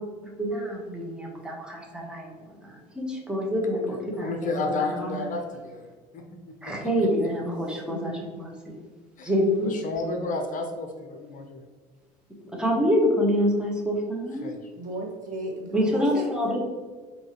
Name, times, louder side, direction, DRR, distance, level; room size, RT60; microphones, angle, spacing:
voice 1, 0.0-2.3 2.6-5.3 6.6-8.7 9.2-9.8 12.5-14.5 15.7-16.6, equal, 5° right, -1 dB, 1.1 m, -27 dB
voice 2, 3.9-5.8 6.1-6.7 9.2-9.3 9.6-11.6 14.4-14.6, left 3 dB, 40° left, 4 dB, 0.7 m, -32 dB
voice 3, 7.9-8.5 14.8-16.3, right 1 dB, 45° right, -1 dB, 1.3 m, -34 dB
4.4 x 2.8 x 3.0 m, 1.4 s
hypercardioid pair, 80°, 19 cm